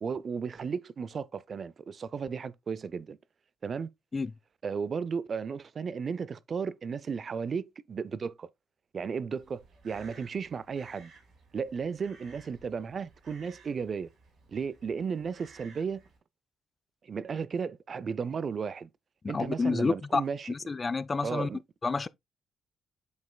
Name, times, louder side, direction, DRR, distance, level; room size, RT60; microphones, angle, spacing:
voice 1, 0.0-3.2 3.6-3.9 4.6-8.5 8.9-11.1 11.5-14.1 14.5-16.0 17.0-18.9 19.3-20.5 21.2-21.6, right 6 dB, 45° right, 0.4 m, -34 dB
Crow, 9.3-16.2, right 4 dB, 65° right, 3.7 m, -57 dB
voice 2, 19.2-20.2 20.5-21.5 21.8-22.1, left 4 dB, 30° left, 0.4 m, -29 dB
7.8 x 5.4 x 2.2 m
cardioid pair, 90°, 0 cm